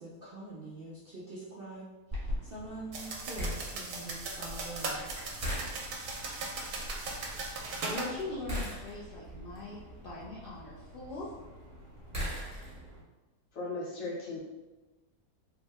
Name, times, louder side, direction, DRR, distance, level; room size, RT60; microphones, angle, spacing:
voice 1, 0.0-5.1, right 2 dB, 55° right, -7 dB, 0.6 m, -45 dB
sound 1, 2.1-13.0, equal, 15° right, 0.7 m, -41 dB
sound 2, 2.9-8.1, right 3 dB, 80° right, 1.1 m, -38 dB
voice 2, 7.2-11.3, left 3 dB, 80° left, -7 dB, 0.5 m, -42 dB
voice 3, 13.5-14.4, left 2 dB, 65° left, -4 dB, 1.1 m, -37 dB
3.5 x 2.1 x 3.4 m, 1.2 s
omnidirectional pair, 1.6 m